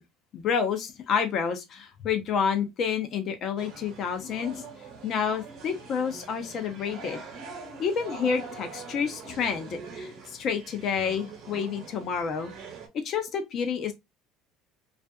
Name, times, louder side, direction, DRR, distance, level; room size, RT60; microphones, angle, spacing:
voice 1, 0.3-4.6 5.0-7.2 7.8-12.5 12.9-13.9, left 6 dB, 40° left, 0.6 m, -29 dB
sound 1, 3.6-12.9, right 4 dB, 50° right, 1.0 m, -44 dB
2.5 x 2.4 x 2.2 m
cardioid pair, 145°, 0 cm